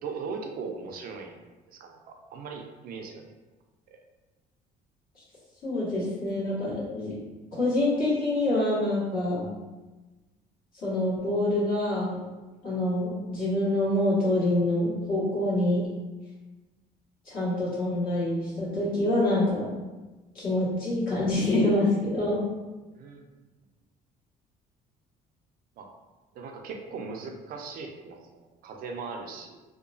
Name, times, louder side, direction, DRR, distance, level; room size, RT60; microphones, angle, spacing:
voice 1, 0.0-1.4 1.7-3.3 3.9-4.0 22.9-23.3 25.8-25.9 26.3-29.6, right 4 dB, 60° right, 3 dB, 0.4 m, -39 dB
voice 2, 5.6-7.1 7.6-9.4 10.8-12.1 12.6-15.8 17.2-19.7 20.3-22.5, left 1 dB, 60° left, -8 dB, 1.5 m, -26 dB
2.8 x 2.2 x 2.5 m, 1.2 s
cardioid pair, 110°, 17 cm